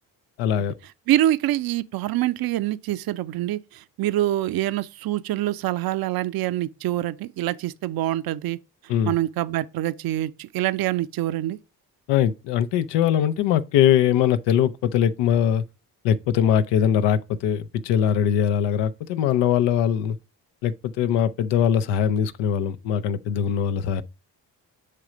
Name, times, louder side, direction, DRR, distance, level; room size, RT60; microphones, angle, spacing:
voice 1, 0.4-0.7 8.9-9.1 12.1-15.6 16.0-20.2 20.6-24.0, left 9 dB, 85° left, 0.6 m, -21 dB
voice 2, 1.1-8.6 9.0-11.6, right 14 dB, 60° right, 0.6 m, -25 dB
7.5 x 3.2 x 4.9 m
supercardioid pair, 55°, 41 cm